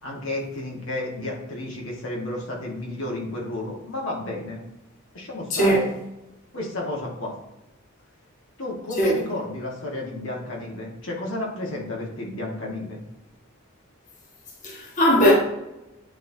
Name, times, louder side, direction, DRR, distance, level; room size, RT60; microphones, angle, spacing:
voice 1, 0.0-4.6 5.1-5.9 6.5-7.3 8.6-13.0, left 1 dB, 65° left, 1.6 m, -32 dB
voice 2, 14.6-15.3, equal, 40° left, 1.6 m, -19 dB
9.1 x 4.3 x 2.7 m
head